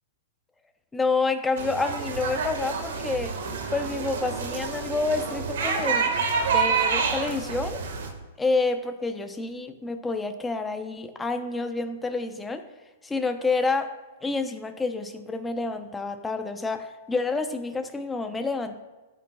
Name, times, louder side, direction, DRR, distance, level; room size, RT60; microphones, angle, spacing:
voice 1, 0.9-3.4 3.7-6.2 6.5-7.8 8.4-12.6 13.0-18.8, left 3 dB, 10° left, 7 dB, 0.8 m, -28 dB
sound 1, 1.6-8.1, right 5 dB, 70° right, 1.8 m, -28 dB
16.5 x 7.5 x 2.4 m, 1.2 s
hypercardioid pair, 120°, 0 cm